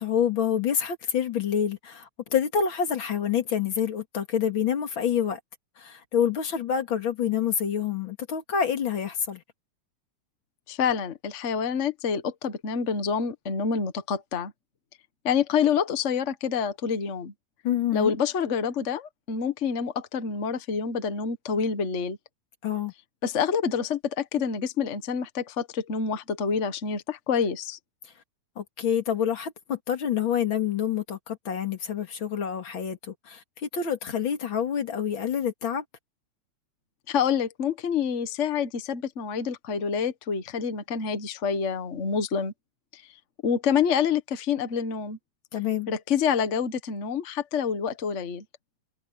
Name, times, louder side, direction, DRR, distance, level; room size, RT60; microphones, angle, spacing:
voice 1, 0.0-5.4 5.8-9.4 17.6-18.1 22.6-22.9 28.6-35.8 45.5-45.9, left 8 dB, 45° left, 2.8 m, -27 dB
voice 2, 10.7-14.5 15.2-17.3 17.9-22.2 23.2-27.8 37.1-42.5 42.9-43.0 43.4-45.2 45.9-48.4, left 6 dB, 60° left, 0.7 m, -27 dB
omnidirectional pair, 3.4 m